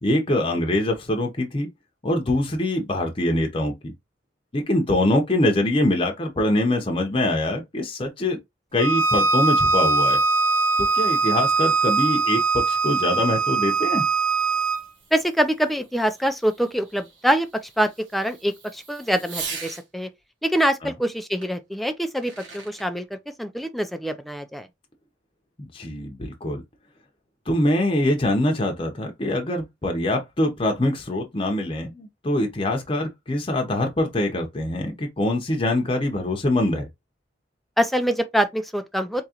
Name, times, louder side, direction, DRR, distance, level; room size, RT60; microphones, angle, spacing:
voice 1, 0.0-1.7 2.0-3.9 4.5-8.4 8.7-10.2 10.8-14.0 20.8-20.9 25.6-26.6 27.5-36.9, left 1 dB, 30° left, 0.8 m, -24 dB
Bowed string instrument, 8.8-14.8, right 4 dB, 50° right, 0.6 m, -21 dB
Fireworks, 11.2-19.9 21.4-21.5 22.0-22.9, right 4 dB, 85° right, 1.6 m, -42 dB
voice 2, 15.1-17.5 17.8-20.1 20.4-24.7 37.8-39.3, equal, ahead, 0.4 m, -24 dB
3.6 x 2.9 x 2.9 m
head